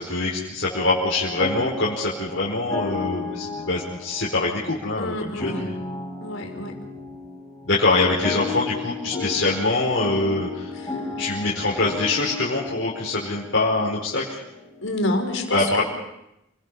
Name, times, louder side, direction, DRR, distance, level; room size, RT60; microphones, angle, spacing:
voice 1, 0.0-5.8 7.6-10.7 11.2-14.4 15.5-15.8, left 2 dB, 65° left, -5 dB, 4.9 m, -24 dB
sound 1, 0.7-15.0, left 3 dB, 15° left, 5.0 m, -34 dB
voice 2, 5.0-5.7 6.2-6.8 10.7-11.0 14.8-15.8, left 1 dB, 85° left, 2 dB, 5.4 m, -28 dB
30.0 x 22.5 x 5.7 m, 0.85 s
head